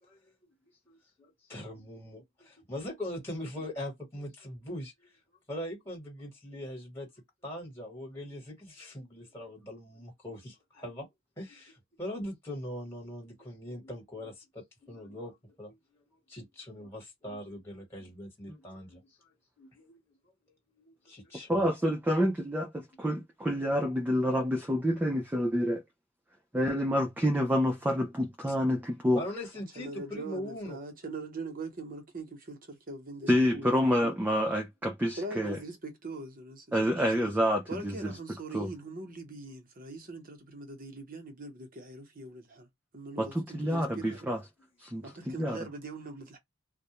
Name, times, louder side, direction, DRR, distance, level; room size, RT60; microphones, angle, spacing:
voice 1, 0.0-0.3 0.6-5.2 5.5-7.1 7.4-11.1 11.4-20.2 20.8-21.7 22.9-23.0 23.5-23.6 29.1-30.8 44.6-44.7, left 1 dB, 15° left, 1.3 m, -42 dB
voice 2, 21.5-25.8 26.5-29.2 33.3-35.6 36.7-38.1 38.5-38.7 43.2-44.4 44.8-45.6, equal, 10° right, 0.4 m, -28 dB
voice 3, 29.8-34.2 35.2-37.3 37.7-42.7 42.9-44.3 45.0-46.4, right 2 dB, 45° right, 0.9 m, -42 dB
2.3 x 2.1 x 2.8 m
head